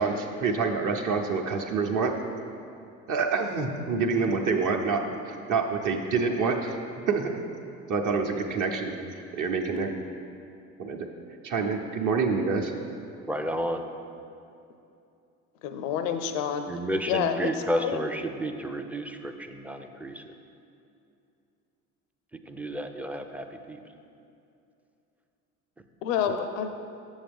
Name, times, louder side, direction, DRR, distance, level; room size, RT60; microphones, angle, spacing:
voice 1, 0.0-2.1 3.1-5.0 5.2-6.8 7.1-7.3 7.9-9.9 10.8-11.1 11.4-12.7, right 4 dB, 50° right, 3 dB, 0.9 m, -27 dB
voice 2, 13.3-13.8 16.7-20.3 22.5-23.8, equal, 5° right, 6 dB, 0.4 m, -31 dB
voice 3, 15.6-16.7 17.1-17.5 17.8-18.0 26.0-26.7, left 8 dB, 80° left, 8 dB, 0.6 m, -28 dB
7.2 x 7.1 x 3.5 m, 2.7 s
hypercardioid pair, 70°, 39 cm